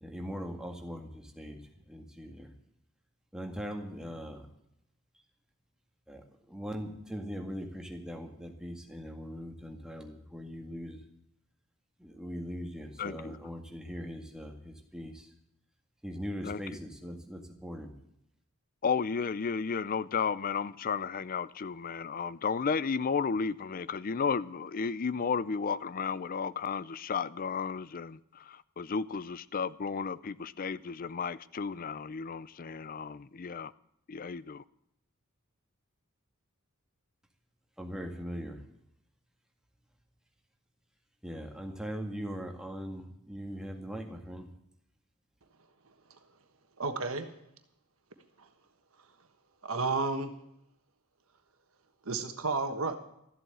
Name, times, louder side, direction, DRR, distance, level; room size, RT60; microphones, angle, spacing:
voice 1, 0.0-1.6 1.9-2.5 3.3-4.5 6.1-11.0 12.0-15.3 16.0-17.9 37.8-38.6 41.2-44.5, equal, 5° right, 2 dB, 1.8 m, -40 dB
voice 2, 13.0-13.4 16.4-16.6 18.8-33.7 34.1-34.6, left 5 dB, 40° left, 18 dB, 0.5 m, -33 dB
voice 3, 46.8-47.3 49.6-50.3 52.0-53.0, right 3 dB, 65° right, 7 dB, 1.4 m, -31 dB
14.0 x 7.9 x 8.8 m, 0.78 s
head